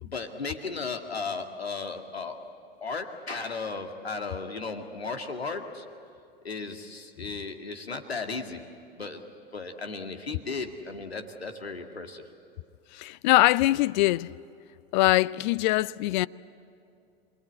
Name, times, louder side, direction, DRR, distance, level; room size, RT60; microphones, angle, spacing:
voice 1, 0.0-2.5 2.8-5.8 6.4-8.7 9.0-9.2 9.5-12.2, left 4 dB, 85° left, 2.0 m, -35 dB
voice 2, 12.9-14.3 14.9-16.3, left 18 dB, 50° left, 0.5 m, -22 dB
27.5 x 20.5 x 8.5 m
figure-of-eight pair, 90°, 30 cm